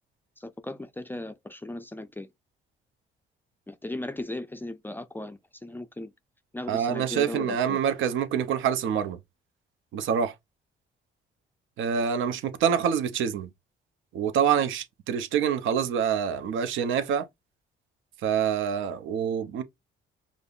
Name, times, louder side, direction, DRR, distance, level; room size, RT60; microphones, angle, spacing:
voice 1, 0.4-2.3 3.7-6.1 6.5-7.8, left 2 dB, 10° left, 0.3 m, -37 dB
voice 2, 6.7-9.2 9.9-10.3 11.8-13.5 14.1-17.3 18.2-19.6, right 8 dB, 80° right, 0.6 m, -26 dB
5.2 x 2.0 x 2.4 m
cardioid pair, 90°, 20 cm